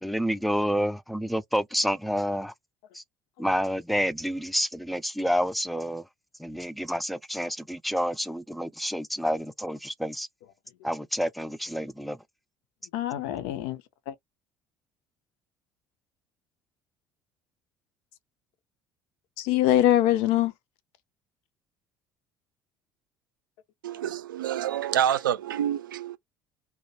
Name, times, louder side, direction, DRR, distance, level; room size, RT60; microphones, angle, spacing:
voice 1, 0.0-2.5 2.9-3.0 3.4-6.0 6.4-10.3 10.8-12.2, equal, ahead, 0.3 m, -29 dB
voice 2, 12.9-13.8 14.1-14.2 19.4-20.5, left 13 dB, 60° left, 0.5 m, -23 dB
voice 3, 23.8-26.2, right 10 dB, 75° right, 0.4 m, -27 dB
2.2 x 2.2 x 2.7 m
figure-of-eight pair, 55°, 11 cm